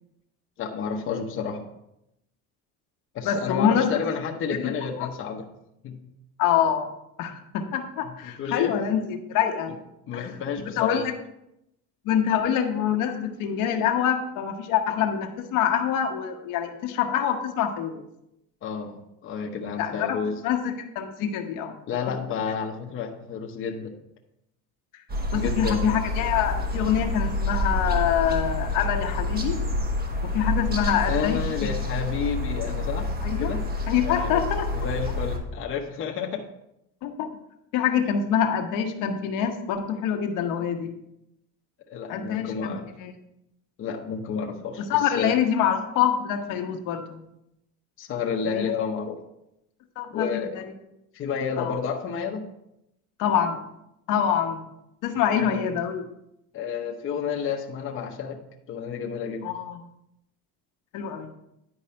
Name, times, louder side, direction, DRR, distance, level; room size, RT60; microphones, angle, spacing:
voice 1, 0.6-1.6 3.1-5.4 5.8-6.0 8.0-8.7 10.1-11.0 18.6-20.4 21.9-23.9 25.3-26.0 31.1-33.1 33.4-33.6 34.0-34.4 34.7-36.4 41.9-42.9 43.8-45.3 48.0-49.2 50.1-50.5 51.1-52.4 55.4-55.6 56.5-58.4 58.7-59.5, left 6 dB, 35° left, 1 dB, 0.9 m, -30 dB
voice 2, 3.2-4.0 4.6-4.7 5.0-5.1 6.4-6.9 7.2-9.7 10.1-10.2 10.8-11.1 12.0-18.0 19.8-20.2 20.4-21.7 25.3-29.6 30.3-31.4 33.2-33.5 33.9-34.7 37.0-37.3 37.7-40.9 42.1-43.1 44.9-47.2 48.5-48.7 50.0-50.6 51.6-51.8 53.2-53.6 54.1-54.6 55.0-56.1 59.4-59.8 60.9-61.3, left 8 dB, 60° left, 4 dB, 1.1 m, -25 dB
sound 1, 25.1-35.4, left 2 dB, 25° right, 1.2 m, -28 dB
10.0 x 4.7 x 4.3 m, 0.83 s
cardioid pair, 140°, 35 cm